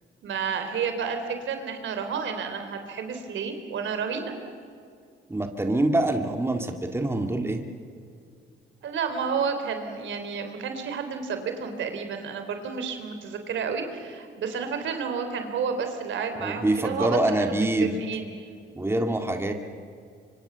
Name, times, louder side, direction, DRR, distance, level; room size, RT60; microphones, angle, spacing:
voice 1, 0.2-4.4 8.8-18.4, right 6 dB, 75° right, 7 dB, 3.7 m, -31 dB
voice 2, 5.3-7.6 16.4-18.0 18.8-19.5, right 2 dB, 10° right, 4 dB, 2.1 m, -25 dB
25.5 x 24.5 x 7.0 m, 2.3 s
cardioid pair, 90°, 20 cm